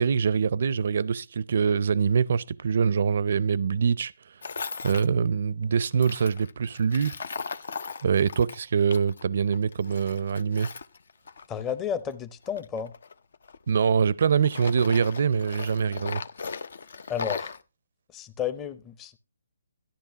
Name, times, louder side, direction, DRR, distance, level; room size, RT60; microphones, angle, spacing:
voice 1, 0.0-4.1 4.8-7.1 8.0-10.7 13.7-16.2, right 6 dB, 60° right, 0.5 m, -24 dB
Tools, 4.4-5.1 5.9-9.2 9.5-11.8 12.4-14.1 14.4-17.6, left 5 dB, 65° left, 0.6 m, -37 dB
voice 2, 11.5-12.9 17.1-17.5 18.1-19.2, left 8 dB, 15° left, 0.7 m, -32 dB
13.0 x 10.5 x 2.8 m
hypercardioid pair, 150°, 0 cm